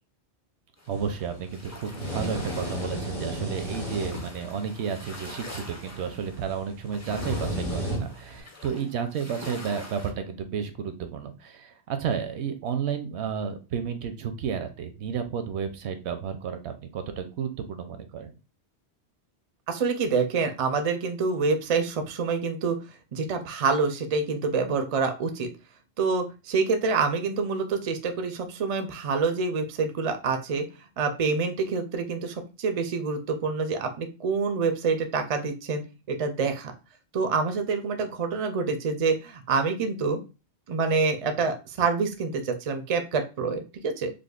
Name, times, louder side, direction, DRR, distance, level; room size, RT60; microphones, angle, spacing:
sound 1, 0.8-10.1, left 2 dB, 20° left, 0.4 m, -45 dB
sound 2, 0.9-8.4, right 1 dB, 75° left, 2.1 m, -35 dB
voice 1, 0.9-18.3, right 7 dB, 75° right, 7 dB, 0.8 m, -32 dB
voice 2, 19.7-22.8 23.1-25.5 26.0-30.7 31.0-35.8 36.1-36.7 37.1-40.2 40.7-44.1, right 4 dB, 50° right, 6 dB, 0.4 m, -27 dB
5.0 x 2.2 x 2.3 m, 0.30 s
omnidirectional pair, 1.2 m